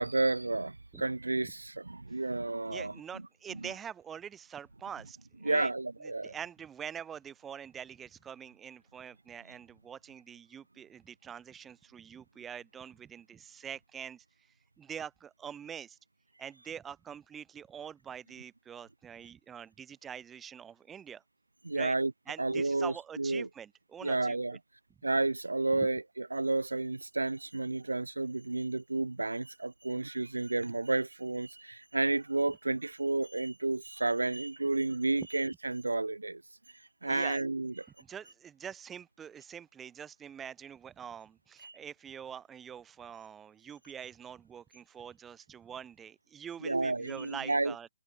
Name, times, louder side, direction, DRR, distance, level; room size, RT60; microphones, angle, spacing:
voice 1, 0.0-3.0 3.6-3.7 5.4-6.3 21.6-22.1 22.4-23.5 24.0-24.6 25.0-36.4 37.0-37.9 41.6-41.8 46.6-47.7, right 2 dB, 85° right, 0.6 m, -31 dB
voice 2, 2.7-5.7 6.2-14.2 14.8-16.0 16.4-21.2 21.7-21.9 22.3-24.4 35.2-35.3 37.0-37.4 38.1-47.9, right 8 dB, 15° right, 1.1 m, -45 dB
figure-of-eight pair, 135°, 0 cm